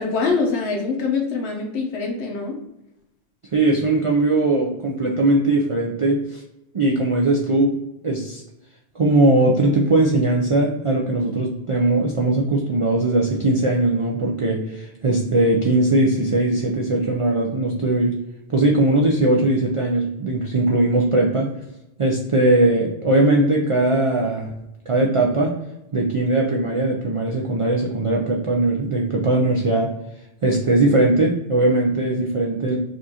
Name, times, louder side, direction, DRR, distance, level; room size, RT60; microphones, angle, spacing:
voice 1, 0.0-2.6, left 4 dB, 75° left, 1 dB, 1.0 m, -24 dB
voice 2, 3.5-6.4 6.7-7.7 8.0-8.4 9.0-18.1 18.5-21.5 22.0-24.5 24.9-25.5 25.9-29.9 30.4-32.8, right 2 dB, 60° right, -2 dB, 0.3 m, -19 dB
5.1 x 2.4 x 2.7 m, 0.91 s
omnidirectional pair, 1.1 m